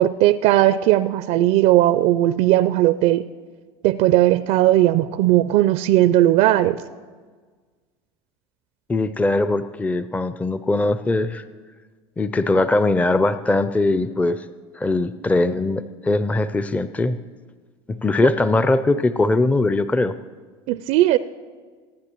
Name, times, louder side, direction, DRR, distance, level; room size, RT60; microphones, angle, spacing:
voice 1, 0.0-3.2 3.8-6.8 20.7-21.2, right 14 dB, 55° right, 15 dB, 0.4 m, -17 dB
voice 2, 8.9-11.4 12.2-14.5 14.7-17.2 17.9-20.1, left 2 dB, 10° left, 13 dB, 0.4 m, -21 dB
23.0 x 9.5 x 3.0 m, 1.5 s
hypercardioid pair, 75°, 13 cm